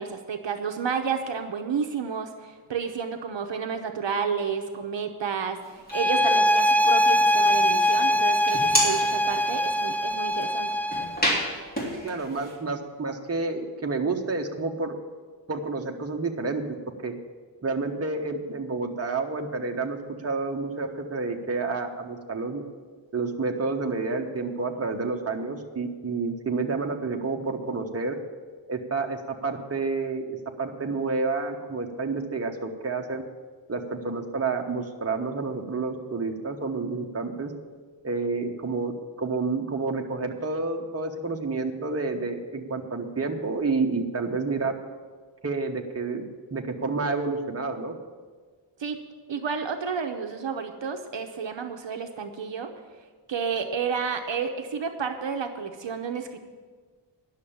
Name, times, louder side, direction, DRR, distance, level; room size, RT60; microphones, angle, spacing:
voice 1, 0.0-10.8 48.8-49.0 49.3-52.7 53.3-56.4, right 6 dB, 70° right, 5 dB, 0.9 m, -31 dB
sound 1, 5.6-6.5 7.0-12.5, equal, 20° left, 3.2 m, -31 dB
sound 2, 5.9-11.2, left 1 dB, 5° left, 0.3 m, -22 dB
voice 2, 12.0-15.0 15.5-16.6 17.0-17.1 17.6-20.0 20.2-22.6 23.1-28.1 28.7-33.2 33.7-37.5 38.0-38.9 39.2-44.7 45.4-46.3 46.5-47.9, right 3 dB, 30° right, 2 dB, 1.1 m, -29 dB
10.5 x 6.7 x 8.6 m, 1.5 s
wide cardioid pair, 115°, 46 cm